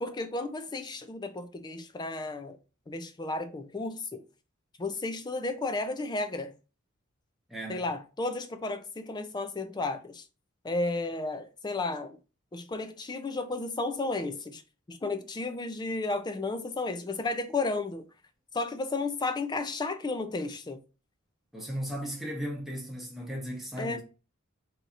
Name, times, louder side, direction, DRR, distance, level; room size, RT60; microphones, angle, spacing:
voice 1, 0.0-2.6 2.9-4.2 4.8-6.5 7.7-10.2 10.6-12.2 12.5-14.6 14.9-18.0 18.5-20.8 23.8-24.0, left 3 dB, 20° left, 0.4 m, -33 dB
voice 2, 7.5-7.8 21.5-24.0, equal, ahead, 1.0 m, -36 dB
4.1 x 2.8 x 2.4 m
head